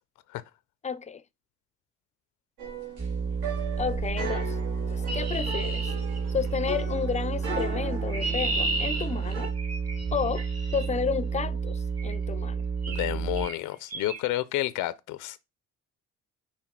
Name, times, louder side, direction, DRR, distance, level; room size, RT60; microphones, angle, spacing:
voice 1, 0.8-1.2 3.8-4.6 4.9-5.9 6.3-9.5 10.1-10.5 10.7-12.6, left 6 dB, 25° left, 0.4 m, -31 dB
sound 1, 2.6-9.5, right 3 dB, 75° right, 2.4 m, -38 dB
sound 2, 3.0-13.5, right 5 dB, 30° right, 0.9 m, -31 dB
Chirp tweet, 5.1-6.7 7.7-10.9 12.0-12.2 12.8-13.1 13.4-13.6 13.9-14.2, right 2 dB, 55° right, 1.7 m, -34 dB
voice 2, 12.9-15.4, left 15 dB, 90° left, 0.5 m, -30 dB
5.7 x 4.4 x 4.5 m
cardioid pair, 90°, 30 cm